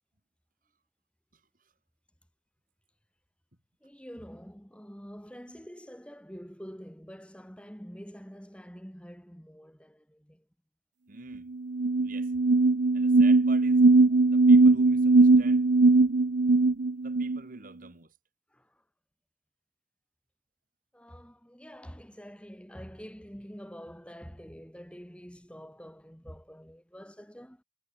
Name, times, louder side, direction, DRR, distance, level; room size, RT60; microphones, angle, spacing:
voice 1, 3.8-10.4 14.1-14.2 18.5-18.6 20.9-27.6, equal, 5° left, 6.6 m, -46 dB
voice 2, 11.1-11.5 12.0-12.3 12.9-13.9 14.3-15.6 17.0-18.1, right 3 dB, 45° right, 4.6 m, -48 dB
sound 1, 11.3-11.4 11.7-17.4, right 3 dB, 65° right, 0.7 m, -20 dB
head